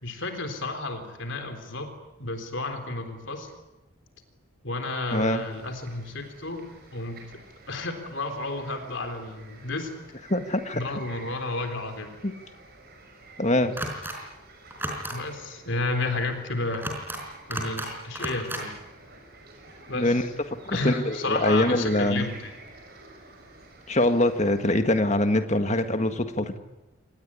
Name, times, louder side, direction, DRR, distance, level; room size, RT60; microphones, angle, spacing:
voice 1, 0.0-1.9 2.2-3.5 4.6-7.3 7.7-9.9 10.7-12.2 15.1-16.9 17.5-18.7 19.9-20.1 20.7-22.5, left 2 dB, 55° left, 7 dB, 3.8 m, -32 dB
voice 2, 5.1-5.5 10.3-10.8 12.2-12.3 13.4-13.7 19.9-20.2 20.7-22.3 23.9-26.6, left 1 dB, 30° left, 8 dB, 1.7 m, -23 dB
sound 1, 5.1-24.7, right 3 dB, 45° right, 6.1 m, -51 dB
sound 2, 13.8-14.2 14.7-15.2 16.7-17.2 17.5-17.9 18.2-18.6, right 1 dB, 10° right, 4.6 m, -32 dB
26.5 x 19.0 x 10.0 m, 1.0 s
head